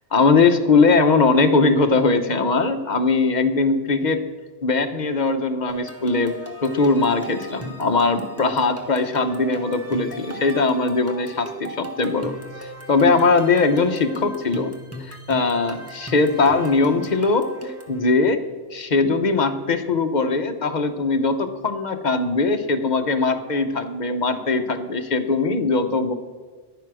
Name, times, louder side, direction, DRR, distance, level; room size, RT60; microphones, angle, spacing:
voice 1, 0.1-4.2 4.6-6.3 6.6-14.7 15.0-18.4 18.7-26.1, left 3 dB, 40° left, 7 dB, 1.1 m, -20 dB
sound 1, 5.7-18.0, right 1 dB, 10° right, 1.3 m, -36 dB
14.5 x 10.5 x 6.2 m, 1.5 s
omnidirectional pair, 1.2 m